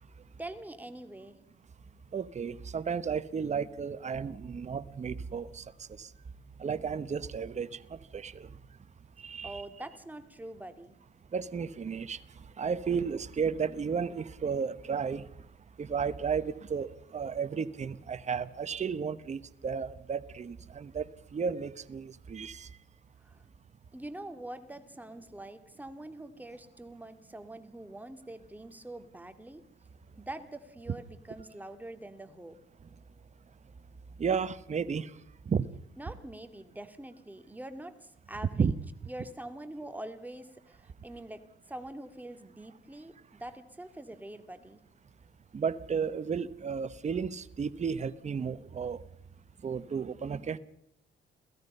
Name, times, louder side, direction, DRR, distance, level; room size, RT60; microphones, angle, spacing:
voice 1, 0.4-1.4 9.4-11.0 23.2-23.4 23.9-29.6 30.2-32.6 36.0-38.7 39.1-44.8, right 1 dB, 10° right, 2.2 m, -44 dB
voice 2, 2.1-5.6 6.0-6.1 6.6-8.5 9.2-9.6 11.3-12.2 12.6-15.2 15.8-21.0 21.3-22.7 34.2-35.1 35.5-35.6 38.6-38.7 45.5-49.0 49.6-50.6, right 6 dB, 35° right, 1.0 m, -33 dB
28.5 x 16.5 x 5.5 m
cardioid pair, 90°, 20 cm